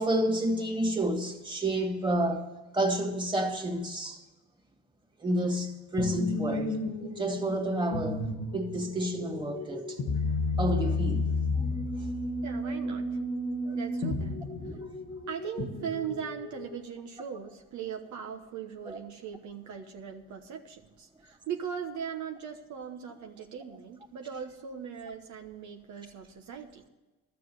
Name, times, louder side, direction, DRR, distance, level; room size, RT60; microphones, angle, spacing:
voice 1, 0.0-2.5 2.7-4.2 5.2-8.2 8.5-10.0 10.6-11.3 12.6-12.7 13.7-13.8 14.6-14.8 18.9-19.0, right 1 dB, 15° right, 2.3 m, -30 dB
sound 1, 6.0-16.8, left 2 dB, 70° left, 1.6 m, -32 dB
voice 2, 12.4-13.1 13.7-14.4 15.3-26.8, right 8 dB, 70° right, 1.2 m, -39 dB
12.5 x 7.6 x 9.3 m
cardioid pair, 90°, 30 cm